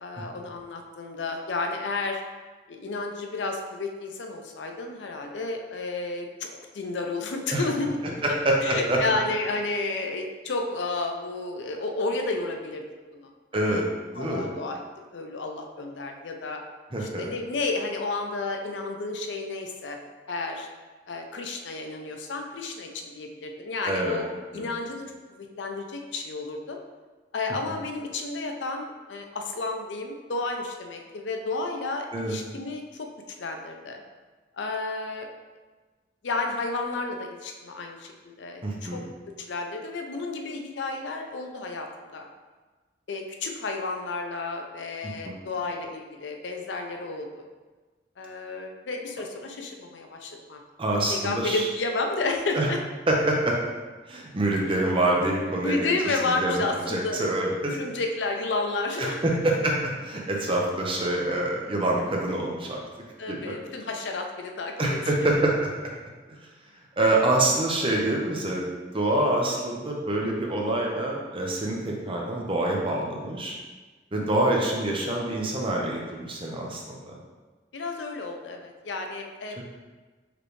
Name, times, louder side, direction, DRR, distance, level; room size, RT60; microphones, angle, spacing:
voice 1, 0.0-2.2 2.7-6.5 6.7-8.1 8.6-12.8 13.1-13.3 13.6-13.8 14.2-16.6 17.0-20.0 20.3-20.7 21.1-24.3 24.5-25.0 25.3-26.8 27.3-33.1 33.4-34.0 34.6-35.3 36.2-38.1 38.4-39.0 39.5-42.3 43.1-47.4 48.2-50.6 51.1-52.8 55.6-57.3 57.7-59.3 63.2-65.5 74.1-74.2 77.7-79.6, left 3 dB, 80° left, 3 dB, 0.5 m, -31 dB
voice 2, 8.2-9.0 13.5-13.8 14.1-14.5 16.9-17.3 23.8-24.2 24.5-24.7 32.1-32.4 38.6-39.0 45.0-45.3 50.8-51.7 52.5-52.7 53.1-53.6 54.1-55.9 56.3-57.8 59.0-62.8 63.3-63.5 64.8-65.7 67.0-68.7 68.9-73.5 74.1-77.2, right 1 dB, 30° right, -1 dB, 0.7 m, -26 dB
5.0 x 3.3 x 3.2 m, 1.3 s
head